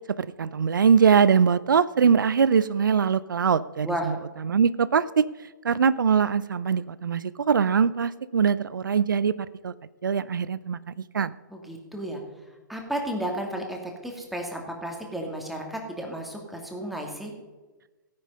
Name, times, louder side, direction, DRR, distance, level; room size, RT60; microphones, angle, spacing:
voice 1, 0.2-4.2 4.4-5.3 5.6-9.7 10.0-10.8 11.1-11.3, right 6 dB, 75° right, 17 dB, 0.5 m, -22 dB
voice 2, 11.5-12.2 12.7-17.3, right 1 dB, ahead, 1 dB, 2.4 m, -33 dB
15.5 x 9.8 x 5.5 m, 1.2 s
figure-of-eight pair, 130°, 11 cm